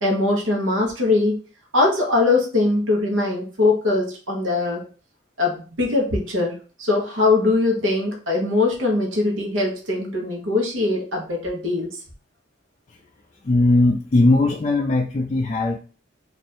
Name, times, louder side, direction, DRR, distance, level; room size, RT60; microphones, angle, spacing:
voice 1, 0.0-1.4 1.7-4.8 5.4-12.0, left 2 dB, 80° right, -1 dB, 1.2 m, -21 dB
voice 2, 13.4-15.8, left 2 dB, 30° left, -1 dB, 0.3 m, -19 dB
3.1 x 2.6 x 4.2 m, 0.38 s
head